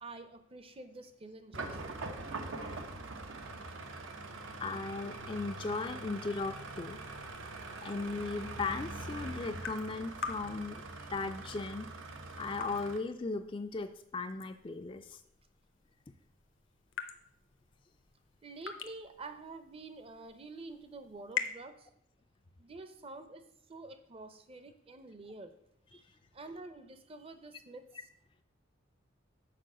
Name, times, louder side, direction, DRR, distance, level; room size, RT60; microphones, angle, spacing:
voice 1, 0.0-2.1 18.4-21.9 22.6-25.6 25.9-26.1 26.3-27.9, right 3 dB, 30° right, 9 dB, 0.6 m, -48 dB
sound 1, 1.5-13.0, right 2 dB, 85° right, 0.9 m, -43 dB
sound 2, 4.5-21.6, left 7 dB, 75° left, 0.7 m, -47 dB
voice 2, 4.6-7.0 7.8-10.8 11.1-11.9 12.4-15.2, left 3 dB, 25° left, 8 dB, 0.3 m, -37 dB
6.8 x 4.8 x 6.1 m, 0.73 s
head